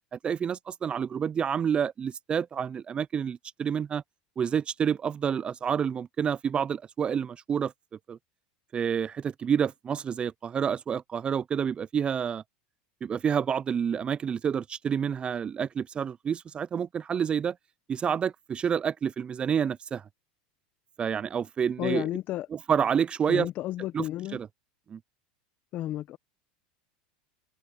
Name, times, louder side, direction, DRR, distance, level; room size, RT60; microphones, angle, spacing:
voice 1, 0.1-4.0 4.4-7.7 8.1-8.2 8.7-12.4 13.0-17.6 17.9-20.0 21.0-22.0 22.5-23.5 23.9-24.0 24.3-24.5 24.9-25.0, right 7 dB, 25° right, 0.4 m, -28 dB
voice 2, 21.8-22.5 23.3-24.4 25.7-26.2, left 14 dB, 45° left, 0.8 m, -32 dB
supercardioid pair, 105°, 4 cm